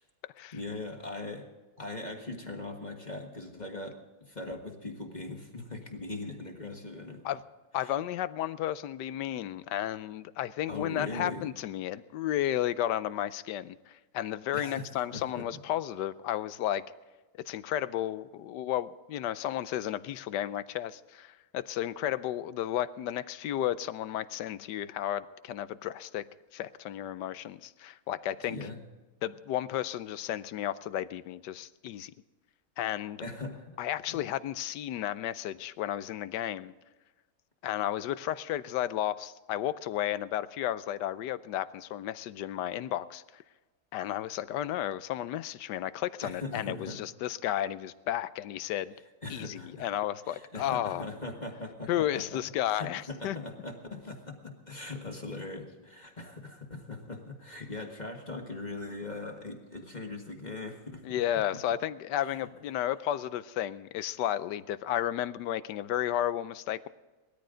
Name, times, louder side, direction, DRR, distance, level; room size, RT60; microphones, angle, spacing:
voice 1, 0.5-1.5 1.8-4.0 4.3-7.2 7.8-7.9 10.7-11.4 14.5-14.9 15.1-15.4 28.4-28.8 33.2-33.8 46.2-47.0 49.2-49.9 50.3-52.4 52.7-61.0 62.2-62.4, left 2 dB, 25° left, 2 dB, 1.6 m, -40 dB
voice 2, 7.7-16.8 17.5-26.3 26.5-28.6 29.2-32.1 32.8-33.2 33.8-36.7 37.6-43.4 43.9-48.9 49.3-51.0 51.9-53.4 61.0-66.9, left 12 dB, 80° left, 15 dB, 1.2 m, -33 dB
19.0 x 13.5 x 3.9 m, 1.2 s
omnidirectional pair, 1.9 m